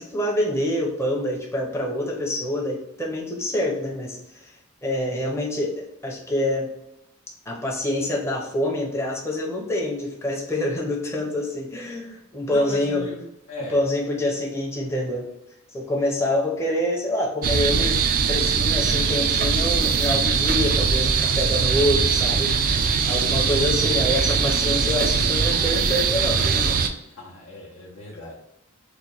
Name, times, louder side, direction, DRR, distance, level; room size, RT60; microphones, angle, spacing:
voice 1, 0.0-4.5 4.8-6.7 7.5-13.1 13.7-15.3 15.7-18.0 18.3-22.7 23.0-26.8, left 1 dB, 15° left, -2 dB, 0.6 m, -26 dB
voice 2, 12.5-13.8 27.1-28.3, left 1 dB, 65° left, -5 dB, 0.7 m, -38 dB
sound 1, 17.4-26.9, right 5 dB, 40° right, 0.3 m, -21 dB
3.1 x 2.1 x 3.8 m, 0.89 s
head